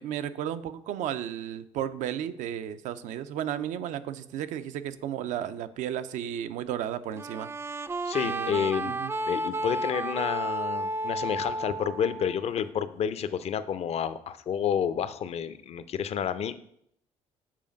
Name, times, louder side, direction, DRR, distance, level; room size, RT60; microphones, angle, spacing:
voice 1, 0.0-7.5 8.2-9.1, right 10 dB, 80° right, 11 dB, 0.5 m, -34 dB
sound 1, 7.1-12.6, right 1 dB, 20° right, 0.4 m, -32 dB
voice 2, 8.0-9.0 9.3-16.6, left 8 dB, 55° left, 13 dB, 0.6 m, -30 dB
7.4 x 5.0 x 5.2 m, 0.71 s
cardioid pair, 90°, 13 cm